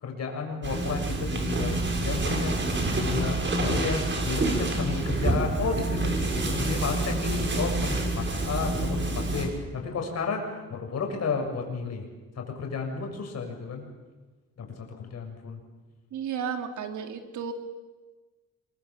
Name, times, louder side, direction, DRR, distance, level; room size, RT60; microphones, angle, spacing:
voice 1, 0.0-2.6 3.0-10.4 10.7-12.1 12.4-13.8 14.6-15.6, left 4 dB, 55° left, 3 dB, 7.1 m, -32 dB
sound 1, 0.6-9.5, right 2 dB, 40° right, 6.8 m, -27 dB
voice 2, 16.1-17.5, right 7 dB, 75° right, 5 dB, 3.4 m, -33 dB
26.5 x 24.0 x 7.5 m, 1.3 s
cardioid pair, 90°, 30 cm